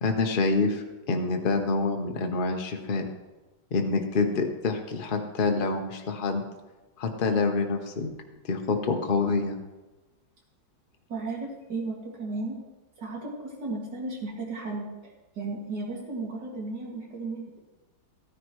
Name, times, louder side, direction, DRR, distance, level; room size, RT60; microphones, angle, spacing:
voice 1, 0.0-3.0 3.7-6.4 7.0-8.1 8.5-9.6, left 3 dB, 40° left, 4 dB, 0.8 m, -26 dB
voice 2, 11.1-12.6 13.0-17.6, right 3 dB, 60° right, -2 dB, 2.8 m, -35 dB
14.5 x 9.9 x 3.1 m, 1.1 s
omnidirectional pair, 2.2 m